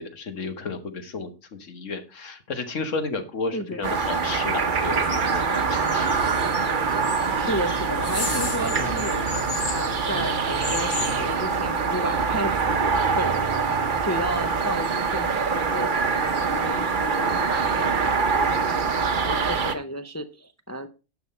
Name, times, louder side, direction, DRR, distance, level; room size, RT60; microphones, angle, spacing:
voice 1, 0.0-6.3, left 3 dB, 75° left, 8 dB, 1.6 m, -33 dB
voice 2, 3.5-3.9 7.4-9.3 9.7-13.5 14.0-15.9 16.2-20.9, equal, 25° left, 8 dB, 0.4 m, -33 dB
sound 1, 3.8-19.7, right 5 dB, 45° right, 0.9 m, -24 dB
sound 2, 4.8-11.4, left 3 dB, 55° left, 1.8 m, -34 dB
10.5 x 6.1 x 4.2 m, 0.31 s
omnidirectional pair, 1.3 m